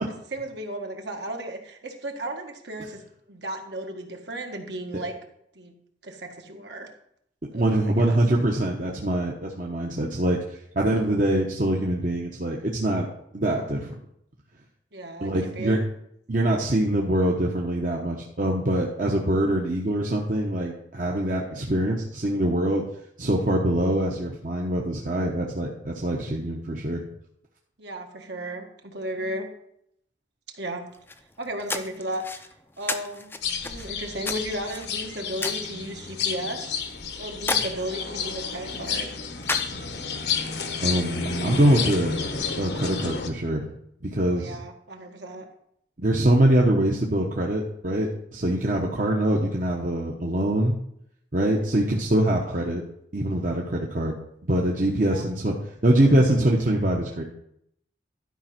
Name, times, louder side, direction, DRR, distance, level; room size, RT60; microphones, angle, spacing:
voice 1, 0.0-3.0 3.3-5.1 5.5-5.7 6.0-6.9 7.5-8.2 14.9-15.8 27.8-29.5 30.6-30.8 31.4-32.5 32.8-33.3 33.6-36.8 37.2-39.1 44.3-45.4 55.0-55.3, right 1 dB, 70° right, 3 dB, 1.7 m, -35 dB
voice 2, 7.5-13.1 13.3-13.9 15.2-15.8 16.3-22.8 23.2-27.0 40.8-42.2 42.6-43.7 44.1-44.6 46.0-50.7 51.3-52.8 53.1-54.1 54.5-55.6 55.8-57.2, right 1 dB, 45° right, -1 dB, 1.0 m, -24 dB
sound 1, 30.9-40.2, left 3 dB, 10° left, 0.5 m, -36 dB
sound 2, 33.4-43.3, left 5 dB, 65° left, 1.1 m, -31 dB
12.0 x 5.3 x 5.9 m, 0.73 s
head